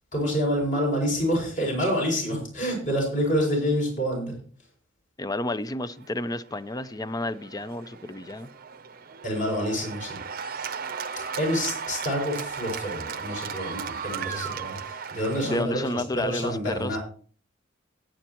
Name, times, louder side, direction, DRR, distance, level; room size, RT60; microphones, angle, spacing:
voice 1, 0.1-4.3 9.2-10.2 11.4-17.0, equal, 40° left, 0 dB, 6.2 m, -27 dB
voice 2, 5.2-8.5 15.4-17.0, left 1 dB, 20° left, 14 dB, 0.5 m, -31 dB
Cheering / Applause, 6.0-15.6, right 6 dB, 50° right, 0.7 m, -36 dB
20.0 x 9.1 x 3.0 m, 0.43 s
head